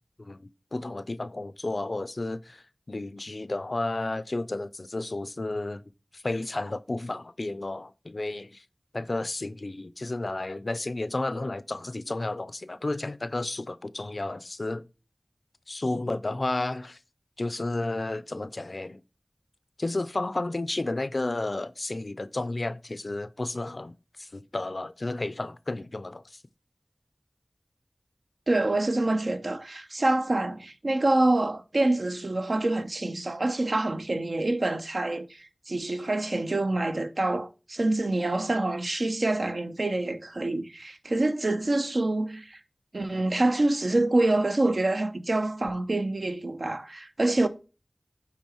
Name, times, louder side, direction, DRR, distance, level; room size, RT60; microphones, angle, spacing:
voice 1, 0.7-2.6 2.9-5.8 6.1-8.6 8.9-14.8 15.7-17.0 17.4-19.0 19.8-26.2, left 2 dB, 65° left, 0.4 m, -32 dB
voice 2, 28.5-42.6 42.9-47.5, right 2 dB, 75° right, 0.7 m, -26 dB
9.8 x 3.8 x 2.9 m
wide cardioid pair, 45°, 0 cm